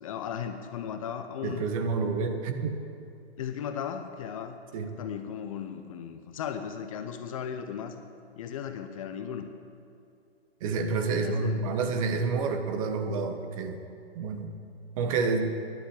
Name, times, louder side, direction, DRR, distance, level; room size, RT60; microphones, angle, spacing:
voice 1, 0.0-1.7 3.4-4.6 5.0-8.0 8.4-9.5 11.1-11.6, left 8 dB, 30° left, 8 dB, 0.7 m, -36 dB
voice 2, 1.4-2.8 4.7-4.9 10.6-13.8 14.1-14.5 15.0-15.5, right 4 dB, 30° right, 6 dB, 1.2 m, -29 dB
12.5 x 11.0 x 7.4 m, 2.6 s
figure-of-eight pair, 130°, 32 cm